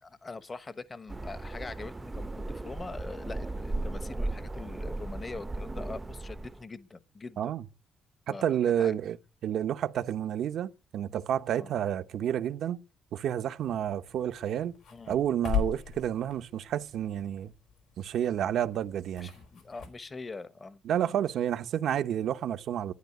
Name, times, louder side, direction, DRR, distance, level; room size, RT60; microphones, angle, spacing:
voice 1, 0.0-7.5 8.3-8.9 11.6-11.7 14.9-15.2 19.2-20.8, left 3 dB, 30° left, 1.1 m, -43 dB
sound 1, 1.1-6.6, right 2 dB, 20° right, 0.7 m, -36 dB
voice 2, 8.3-9.2 9.4-12.8 13.1-14.7 15.1-17.5 18.0-19.3 20.8-22.9, right 10 dB, 70° right, 0.9 m, -30 dB
sound 2, 13.6-19.9, left 7 dB, 75° left, 4.3 m, -39 dB
11.5 x 9.8 x 9.4 m
cardioid pair, 90°, 0 cm